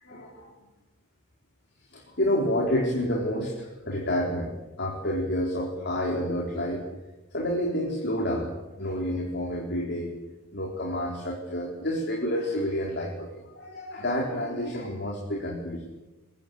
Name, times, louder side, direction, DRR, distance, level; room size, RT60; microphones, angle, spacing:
voice 1, 0.0-0.5 1.9-6.8 7.3-8.5 8.8-10.1 10.5-15.9, equal, 50° left, -1 dB, 4.0 m, -29 dB
23.0 x 22.0 x 8.5 m, 1.1 s
head